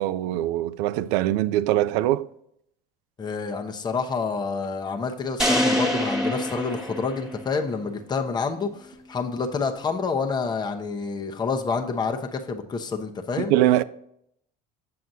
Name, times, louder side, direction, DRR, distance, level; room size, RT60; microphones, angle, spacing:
voice 1, 0.0-2.3 13.4-13.8, right 14 dB, 85° right, 0.4 m, -22 dB
voice 2, 3.2-13.5, left 4 dB, 20° left, 0.9 m, -28 dB
sound 1, 5.4-7.7, equal, ahead, 1.5 m, -25 dB
7.5 x 7.5 x 2.7 m
cardioid pair, 125°, 20 cm